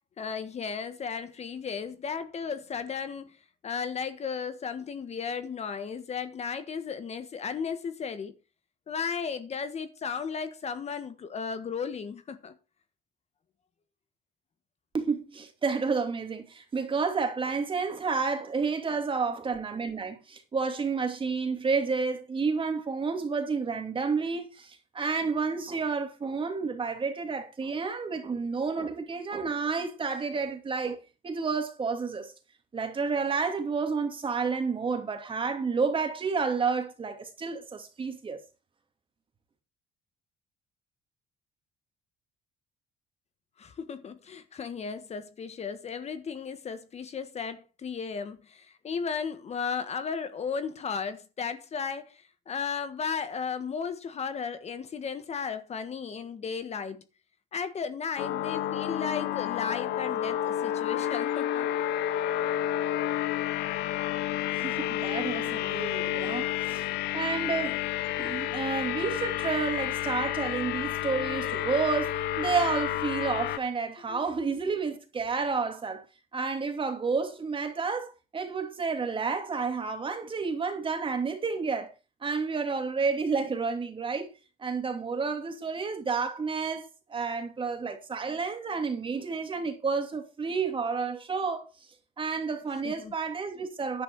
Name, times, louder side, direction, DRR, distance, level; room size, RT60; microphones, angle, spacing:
voice 1, 0.2-3.4 3.6-8.3 8.9-12.5 43.6-57.0 57.5-61.9 74.1-74.2 74.6-74.7 92.8-93.1, left 6 dB, 40° left, 1.4 m, -35 dB
voice 2, 14.9-31.0 31.2-32.3 32.7-38.4 64.5-66.9 67.1-67.8 68.2-76.0 76.3-81.9 82.2-84.3 84.6-91.7 92.2-94.0, right 5 dB, 30° right, 2.6 m, -30 dB
sound 1, 58.2-73.6, left 12 dB, 80° left, 0.9 m, -30 dB
10.5 x 9.4 x 4.7 m
cardioid pair, 110°, 17 cm